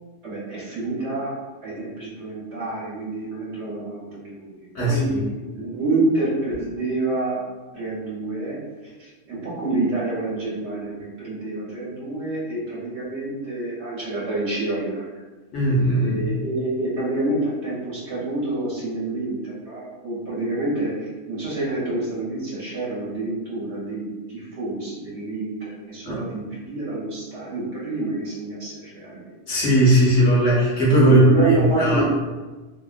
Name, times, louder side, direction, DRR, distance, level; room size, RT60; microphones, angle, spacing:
voice 1, 0.2-1.3 1.6-5.2 5.5-7.4 7.7-15.2 16.0-29.3 31.0-32.0, right 2 dB, 60° right, -7 dB, 1.0 m, -27 dB
voice 2, 4.7-5.3 15.5-16.2 26.0-26.2 29.5-32.0, right 1 dB, 60° left, -6 dB, 0.9 m, -18 dB
2.7 x 2.0 x 2.4 m, 1.2 s
omnidirectional pair, 1.4 m